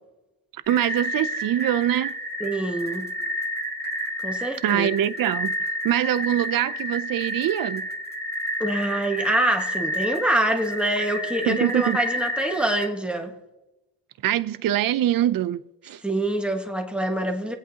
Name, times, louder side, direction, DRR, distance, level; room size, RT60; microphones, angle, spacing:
sound 1, 0.6-12.9, equal, 25° right, 1.9 m, -30 dB
voice 1, 0.7-2.1 4.6-7.8 11.5-12.0 14.2-16.0, right 12 dB, 55° right, 0.6 m, -24 dB
voice 2, 2.4-3.1 4.2-4.9 8.6-13.3 16.0-17.6, right 1 dB, ahead, 1.6 m, -25 dB
22.0 x 8.2 x 2.9 m
cardioid pair, 100°, 42 cm